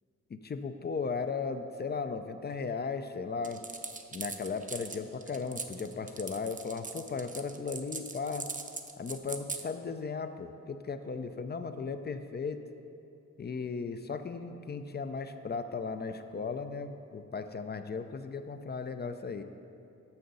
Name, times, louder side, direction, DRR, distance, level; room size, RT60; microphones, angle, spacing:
voice 1, 0.3-3.6 4.1-8.5 9.0-12.6 13.4-19.4, left 5 dB, 35° left, 9 dB, 0.4 m, -36 dB
sound 1, 3.4-9.6, right 4 dB, 25° right, 0.6 m, -40 dB
6.8 x 6.5 x 5.4 m, 2.7 s
cardioid pair, 85°, 29 cm